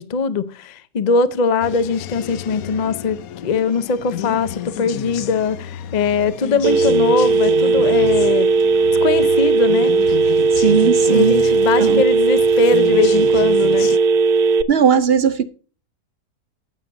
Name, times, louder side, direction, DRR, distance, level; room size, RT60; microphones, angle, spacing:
voice 1, 0.0-8.5 9.0-9.9 11.1-13.9, left 4 dB, 45° left, 0.6 m, -21 dB
sound 1, 1.6-14.0, left 10 dB, 70° left, 1.0 m, -31 dB
Telephone, 6.6-14.6, right 4 dB, 85° right, 1.2 m, -16 dB
voice 2, 10.5-11.4 11.8-12.0 14.7-15.4, right 7 dB, 50° right, 0.8 m, -17 dB
16.0 x 7.4 x 2.6 m
omnidirectional pair, 1.6 m